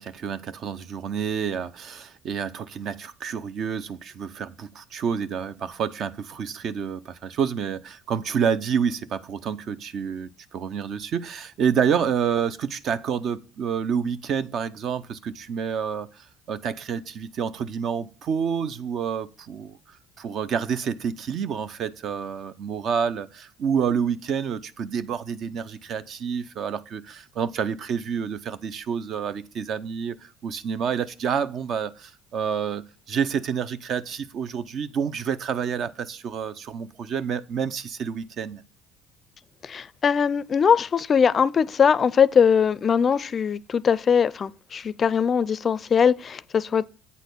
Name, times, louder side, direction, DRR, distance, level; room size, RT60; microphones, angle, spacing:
voice 1, 0.0-38.6, right 7 dB, 55° right, 0.6 m, -28 dB
voice 2, 39.6-46.8, left 7 dB, 40° left, 0.4 m, -21 dB
8.4 x 4.1 x 6.7 m
supercardioid pair, 85°, 0 cm